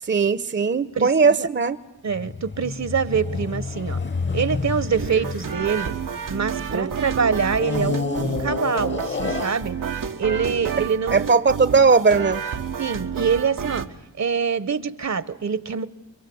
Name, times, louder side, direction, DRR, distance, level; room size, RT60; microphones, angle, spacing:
voice 1, 0.1-1.8 6.7-6.9 11.1-12.4, right 4 dB, 35° right, 14 dB, 0.9 m, -18 dB
voice 2, 0.9-1.5 2.0-4.0 4.3-5.9 6.3-9.8 10.2-11.4 12.8-13.9 14.2-15.9, right 6 dB, 60° right, 16 dB, 1.2 m, -25 dB
sound 1, 2.1-6.8 7.5-10.1 10.7-10.9, left 4 dB, 35° left, 1.1 m, -29 dB
sound 2, 5.0-13.9, right 7 dB, 90° right, 1.3 m, -30 dB
29.0 x 23.0 x 8.0 m, 0.88 s
cardioid pair, 50°, 32 cm